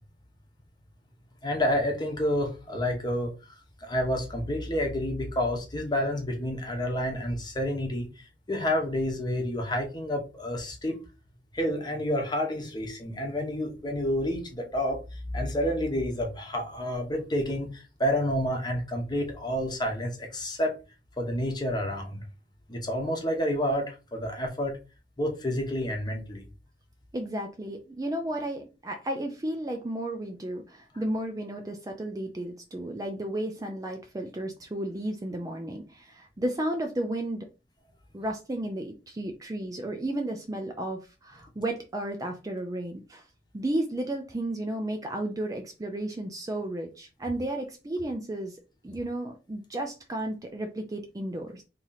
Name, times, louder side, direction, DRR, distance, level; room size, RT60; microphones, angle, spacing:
voice 1, 1.4-3.3 3.8-11.0 11.5-20.7 21.2-22.2 22.7-24.8 25.2-26.4, equal, 25° left, 0.9 m, -29 dB
voice 2, 27.1-37.5 38.1-43.2 43.5-48.6 48.8-51.6, right 1 dB, 20° right, 0.4 m, -33 dB
3.0 x 2.8 x 3.9 m
head